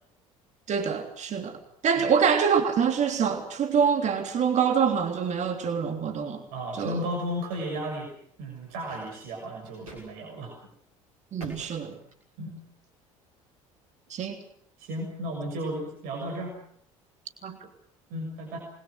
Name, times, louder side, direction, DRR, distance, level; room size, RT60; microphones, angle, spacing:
voice 1, 0.7-1.6 1.8-6.4 6.8-7.0 11.3-11.9 14.1-14.4 17.4-17.6, right 7 dB, 40° right, 3.3 m, -25 dB
voice 2, 6.5-8.1 8.4-10.6 12.4-12.6 14.8-16.6 18.1-18.6, equal, 60° right, 7.0 m, -34 dB
sound 1, 8.3-10.1 10.5-10.7 11.4-12.6, right 1 dB, 80° right, 6.5 m, -47 dB
28.0 x 22.0 x 6.5 m
figure-of-eight pair, 60°, 17 cm